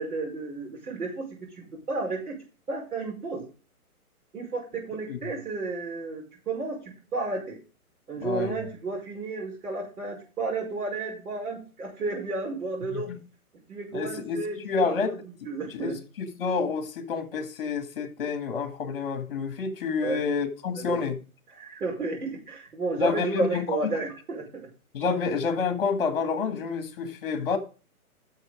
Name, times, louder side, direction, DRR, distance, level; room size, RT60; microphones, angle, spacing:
voice 1, 0.0-2.4 2.7-3.4 4.3-6.8 7.1-7.6 8.1-13.1 13.7-15.2 15.5-16.0 20.0-20.2 20.8-21.0 21.5-24.7, right 3 dB, 80° right, 5.3 m, -32 dB
voice 2, 8.2-8.6 12.9-13.2 13.9-21.2 23.0-24.0 24.9-27.6, left 5 dB, 35° left, 2.0 m, -29 dB
10.5 x 6.8 x 5.0 m
hypercardioid pair, 175°, 45 cm